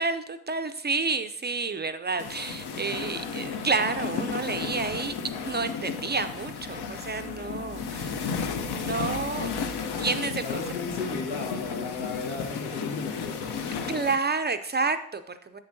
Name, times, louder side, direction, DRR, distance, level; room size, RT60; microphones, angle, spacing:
voice 1, 0.0-5.1 5.4-9.5 10.0-10.6 13.9-15.6, right 4 dB, 25° right, 9 dB, 0.4 m, -30 dB
sound 1, 2.2-14.1, left 5 dB, 60° left, 0.8 m, -33 dB
sound 2, 4.1-10.2, left 2 dB, 25° left, 1.5 m, -50 dB
voice 2, 10.4-13.7, left 4 dB, 80° left, 0 dB, 1.5 m, -35 dB
6.8 x 6.6 x 2.7 m, 0.67 s
supercardioid pair, 55°, 45 cm